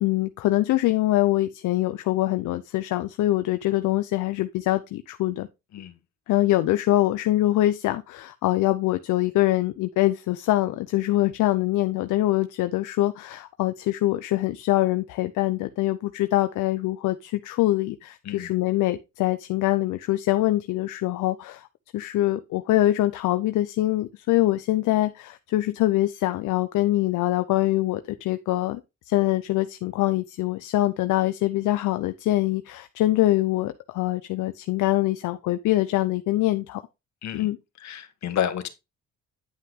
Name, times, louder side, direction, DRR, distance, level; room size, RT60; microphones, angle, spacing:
voice 1, 0.0-5.5 6.3-21.7 21.9-28.8 29.1-36.8 37.3-37.6, left 16 dB, 80° left, 0.6 m, -24 dB
voice 2, 37.8-38.7, left 10 dB, 65° left, 1.4 m, -30 dB
9.8 x 5.6 x 3.6 m
cardioid pair, 90°, 30 cm